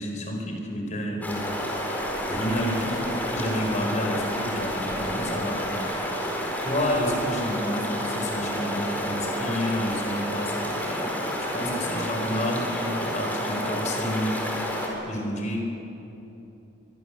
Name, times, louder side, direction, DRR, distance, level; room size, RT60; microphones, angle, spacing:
voice 1, 0.0-1.6 2.2-5.9 6.6-14.4 15.1-15.6, equal, 45° left, 2 dB, 4.5 m, -30 dB
sound 1, 1.2-14.9, equal, 10° left, 4.4 m, -30 dB
24.5 x 22.0 x 7.2 m, 2.9 s
head